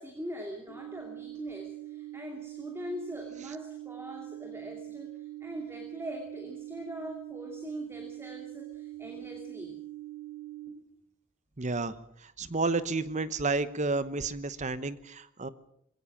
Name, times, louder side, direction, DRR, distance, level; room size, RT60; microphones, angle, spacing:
voice 1, 0.0-9.8, equal, 10° right, 2 dB, 2.6 m, -42 dB
sound 1, 0.7-10.7, right 15 dB, 20° left, 3.7 m, -43 dB
voice 2, 11.6-11.9 12.2-15.5, right 3 dB, 30° right, 14 dB, 1.0 m, -31 dB
22.0 x 17.5 x 7.3 m, 0.69 s
head